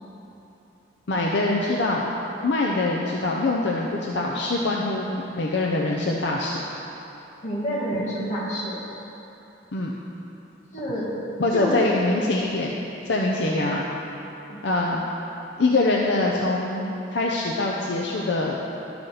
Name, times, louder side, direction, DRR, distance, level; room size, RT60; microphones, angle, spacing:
voice 1, 1.1-2.0 2.4-6.6 9.7-9.9 11.4-12.7 13.1-13.8 14.6-15.0 15.6-18.6, left 2 dB, 70° left, -2 dB, 0.6 m, -24 dB
voice 2, 7.4-8.8 10.7-11.2 11.5-11.8 14.5-14.6, equal, 40° left, -8 dB, 2.0 m, -28 dB
11.5 x 5.8 x 3.9 m, 3.0 s
head